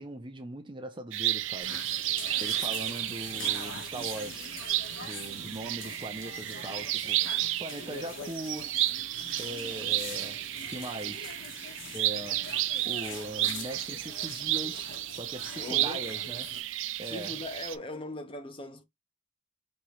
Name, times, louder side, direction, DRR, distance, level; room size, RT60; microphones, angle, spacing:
voice 1, 0.0-1.9 2.4-4.5 5.0-8.8 9.4-11.4 11.9-12.5 12.8-16.6 17.0-17.4, right 1 dB, 25° right, 0.7 m, -40 dB
sound 1, 1.1-17.8, right 15 dB, 80° right, 0.4 m, -32 dB
sound 2, 1.6-16.6, left 4 dB, 80° left, 1.5 m, -44 dB
voice 2, 15.6-16.2 17.0-18.8, left 1 dB, 30° left, 0.7 m, -39 dB
5.4 x 2.9 x 3.1 m
head